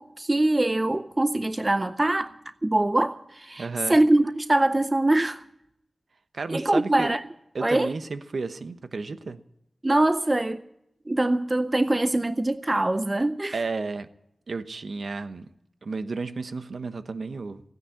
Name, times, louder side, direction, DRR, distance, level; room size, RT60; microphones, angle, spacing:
voice 1, 0.0-2.3 2.6-5.4 6.5-7.2 7.6-7.9 9.8-10.6 11.1-13.6, right 1 dB, 25° right, 0.6 m, -23 dB
voice 2, 3.6-4.0 6.3-7.1 7.5-9.4 13.5-14.1 14.5-15.5 15.8-17.6, right 4 dB, 70° right, 1.0 m, -32 dB
16.0 x 9.5 x 9.5 m
wide cardioid pair, 90°, 0 cm